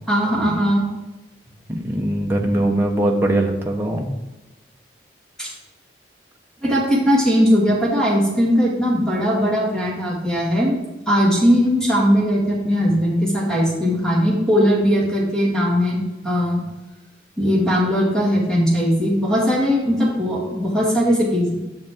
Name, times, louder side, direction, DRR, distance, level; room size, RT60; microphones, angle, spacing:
voice 1, 0.1-0.9 5.4-5.5 6.6-10.8 11.1-16.6 17.4-21.6, equal, 5° left, -5 dB, 2.0 m, -19 dB
voice 2, 1.7-4.1, right 1 dB, 15° right, 1 dB, 0.9 m, -21 dB
10.5 x 6.5 x 3.6 m, 1.1 s
head